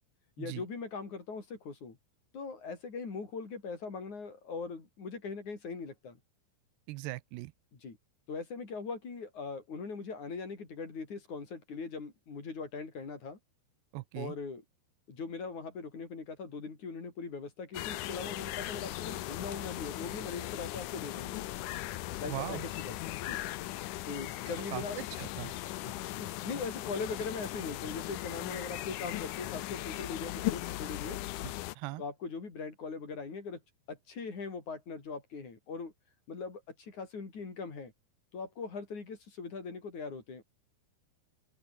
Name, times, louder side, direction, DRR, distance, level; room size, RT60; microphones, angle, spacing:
voice 1, 0.4-2.0 2.3-6.2 7.7-8.0 8.3-13.4 14.1-14.6 15.1-21.4 22.2-23.4 24.1-25.0 25.8-31.2 32.0-33.6 33.9-35.9 36.3-37.9 38.3-40.4, left 4 dB, 45° left, 6.1 m, -40 dB
voice 2, 6.9-7.5 13.9-14.3 22.3-22.7 24.7-25.5 31.8-32.0, right 19 dB, 85° right, 2.8 m, -39 dB
sound 1, 17.7-31.8, left 16 dB, 75° left, 1.9 m, -38 dB
open air
omnidirectional pair, 4.7 m